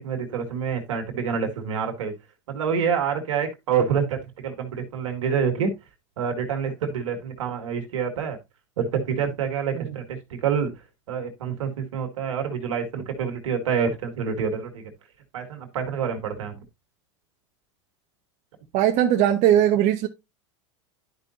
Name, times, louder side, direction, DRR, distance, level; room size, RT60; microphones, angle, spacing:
voice 1, 0.0-2.1 2.5-5.7 6.2-8.4 8.8-10.7 11.1-14.9 15.3-16.6, right 6 dB, 80° right, 2.0 m, -27 dB
voice 2, 18.7-20.1, right 11 dB, 50° right, 1.0 m, -19 dB
11.5 x 5.3 x 2.6 m
hypercardioid pair, 105°, 16 cm